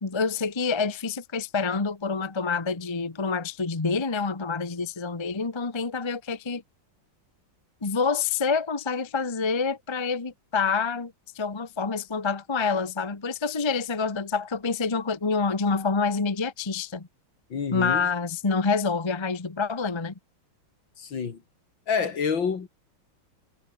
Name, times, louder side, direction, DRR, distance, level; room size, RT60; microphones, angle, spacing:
voice 1, 0.0-6.6 7.8-17.1 17.7-20.1, left 4 dB, 20° left, 0.9 m, -27 dB
voice 2, 17.5-18.1 21.0-21.4 21.9-22.7, left 6 dB, 65° left, 3.0 m, -27 dB
omnidirectional pair, 2.2 m